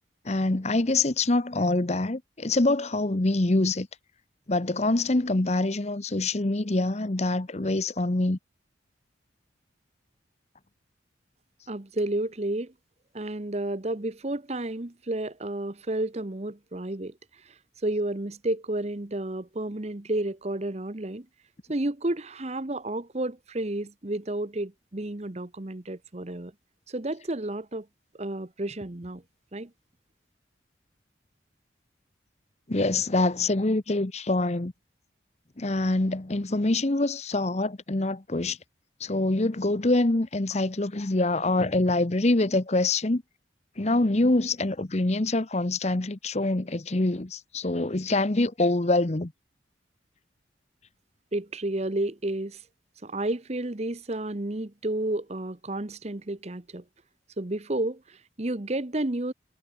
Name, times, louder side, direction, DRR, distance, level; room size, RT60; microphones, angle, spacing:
voice 1, 0.2-3.9 4.5-8.4 32.7-34.7 35.6-38.6 39.0-43.2 43.8-49.3, left 2 dB, 35° left, 0.9 m, -25 dB
voice 2, 11.7-12.7 13.1-17.1 17.4-17.5 17.8-21.3 21.7-26.5 26.9-27.9 28.2-29.2 29.5-29.7 51.3-52.6 53.0-56.8 57.4-59.3, right 1 dB, 35° right, 1.0 m, -31 dB
head